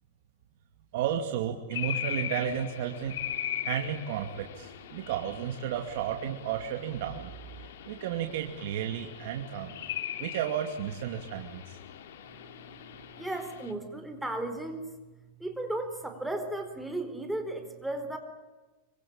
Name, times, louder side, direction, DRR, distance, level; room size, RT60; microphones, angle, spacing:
voice 1, 0.9-3.2 3.6-7.3 7.9-9.7 10.2-11.8, right 9 dB, 60° right, 3 dB, 2.5 m, -33 dB
sound 1, 1.7-13.7, left 10 dB, 75° left, 3.4 m, -40 dB
voice 2, 13.2-15.0 15.4-18.2, right 1 dB, 5° right, 6 dB, 4.3 m, -35 dB
26.0 x 25.0 x 8.9 m, 1.1 s
supercardioid pair, 155°, 0 cm